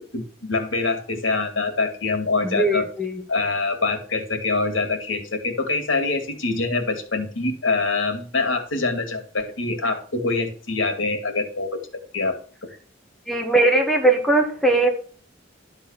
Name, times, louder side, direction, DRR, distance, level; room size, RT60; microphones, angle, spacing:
voice 1, 0.1-2.9 3.3-11.8 12.1-12.4, left 3 dB, 85° left, 5 dB, 2.2 m, -24 dB
voice 2, 2.4-3.2 13.3-14.9, right 2 dB, ahead, 0 dB, 2.0 m, -19 dB
12.0 x 4.1 x 7.0 m, 0.42 s
head